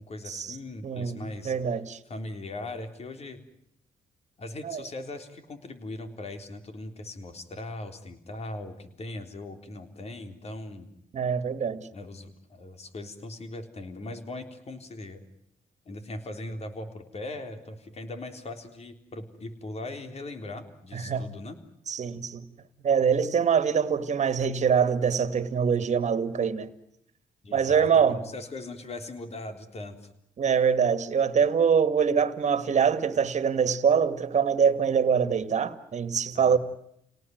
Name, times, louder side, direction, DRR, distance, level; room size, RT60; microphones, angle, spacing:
voice 1, 0.0-1.5 2.1-3.4 4.4-10.9 11.9-15.2 15.9-21.6 27.4-30.1 36.3-36.6, left 2 dB, 45° left, 3.7 m, -39 dB
voice 2, 0.8-2.0 4.6-4.8 11.1-11.9 20.9-21.3 21.9-22.4 22.8-26.7 27.5-28.2 30.4-36.6, right 7 dB, 50° right, 2.0 m, -24 dB
29.5 x 18.5 x 9.4 m
cardioid pair, 85°, 15 cm